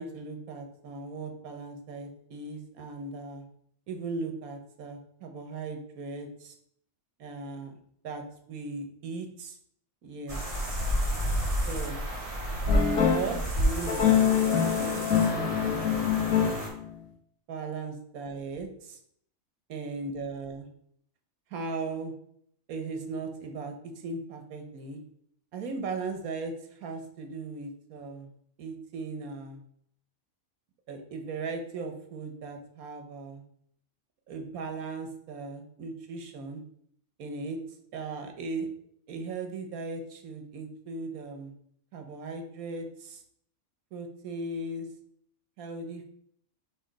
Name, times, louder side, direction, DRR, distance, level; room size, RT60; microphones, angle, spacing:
voice 1, 0.0-3.5 3.9-6.5 7.2-7.8 8.0-8.2 8.5-9.6 10.0-10.4 11.7-12.0 13.1-16.6 17.5-19.0 19.7-20.7 21.5-22.1 22.7-25.0 25.5-28.3 28.6-29.6 30.9-33.4 34.3-36.6 37.2-37.6 37.9-38.7 39.1-41.5 41.9-43.2 43.9-44.9 45.6-46.0, right 3 dB, 80° right, 5 dB, 1.4 m, -38 dB
sound 1, 10.3-16.7, equal, 25° right, 1.7 m, -30 dB
sound 2, 12.7-13.4 13.9-16.9, left 8 dB, 75° left, 1.6 m, -25 dB
5.0 x 3.9 x 5.1 m, 0.67 s
omnidirectional pair, 1.5 m